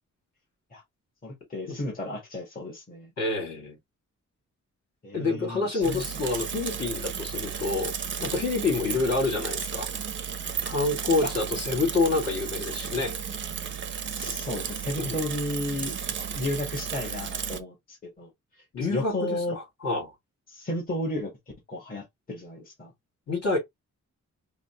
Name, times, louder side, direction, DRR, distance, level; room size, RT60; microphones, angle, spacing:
voice 1, 1.2-3.1 5.0-6.1 11.2-11.3 11.8-11.9 14.2-18.3 18.9-19.6 20.5-21.3 21.7-22.9, left 1 dB, 30° left, 1.9 m, -33 dB
voice 2, 3.2-3.8 5.1-7.9 8.2-9.9 10.6-13.2 15.0-15.2 18.7-20.1 23.3-23.6, left 3 dB, 55° left, 2.8 m, -27 dB
Bicycle / Mechanisms, 5.8-17.6, right 7 dB, 40° right, 0.6 m, -34 dB
5.1 x 2.5 x 3.1 m
wide cardioid pair, 165°, 30 cm